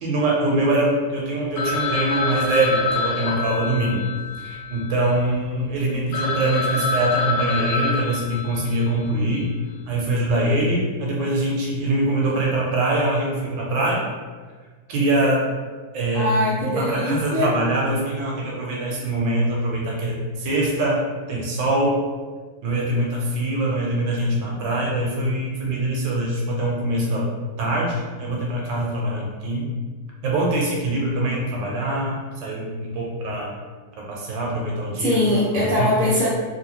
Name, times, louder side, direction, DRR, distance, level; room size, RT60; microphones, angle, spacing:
voice 1, 0.0-4.0 4.4-9.5 9.9-14.0 14.9-15.4 15.9-16.3 16.6-21.0 21.3-22.0 22.6-27.2 27.6-29.7 30.2-33.5 34.1-35.2 35.6-36.0, right 1 dB, 75° right, -3 dB, 1.2 m, -23 dB
Telephone, 1.6-5.4 5.8-5.9 6.1-9.0, left 3 dB, 85° left, 1.4 m, -26 dB
voice 2, 16.1-17.5 35.0-36.3, left 1 dB, 50° right, -9 dB, 0.6 m, -22 dB
3.1 x 2.9 x 2.8 m, 1.5 s
omnidirectional pair, 2.2 m